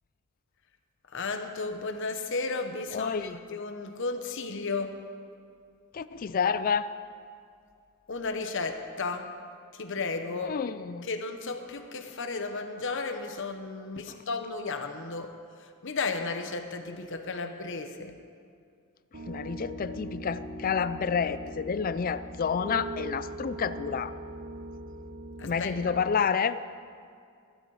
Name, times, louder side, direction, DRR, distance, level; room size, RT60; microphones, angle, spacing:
voice 1, 1.1-5.0 8.1-9.3 9.7-10.7 11.0-18.2 25.4-25.7, left 3 dB, 60° left, 6 dB, 1.0 m, -34 dB
voice 2, 2.9-3.4 5.9-6.9 10.4-11.1 14.1-14.2 19.3-24.1 25.4-26.6, left 6 dB, 40° left, 14 dB, 0.4 m, -29 dB
Piano, 19.1-26.0, right 1 dB, 70° right, 2.4 m, -41 dB
15.0 x 12.5 x 4.9 m, 2.3 s
head